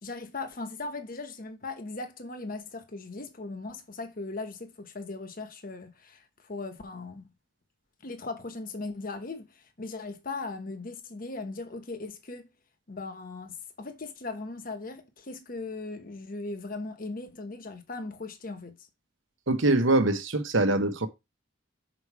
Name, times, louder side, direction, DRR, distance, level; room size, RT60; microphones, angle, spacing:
voice 1, 0.0-7.3 8.0-12.5 12.9-18.9, left 3 dB, 45° left, 1.1 m, -38 dB
voice 2, 19.5-21.1, right 2 dB, 70° right, 1.0 m, -23 dB
6.2 x 4.8 x 4.7 m
head